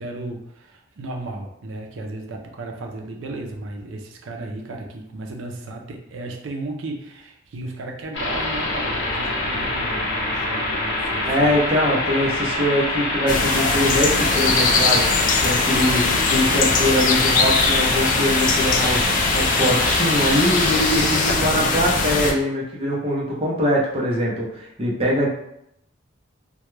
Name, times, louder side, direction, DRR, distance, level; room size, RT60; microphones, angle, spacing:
voice 1, 0.0-11.5 21.3-21.9, right 2 dB, 85° right, 2 dB, 0.5 m, -34 dB
sound 1, 8.1-21.3, left 2 dB, 70° left, 0.7 m, -25 dB
voice 2, 11.3-15.1 15.4-16.0 16.3-19.1 19.3-25.3, equal, 30° right, -4 dB, 0.6 m, -22 dB
sound 2, 13.3-22.3, left 4 dB, 40° left, 0.3 m, -21 dB
2.3 x 2.2 x 3.0 m, 0.78 s
head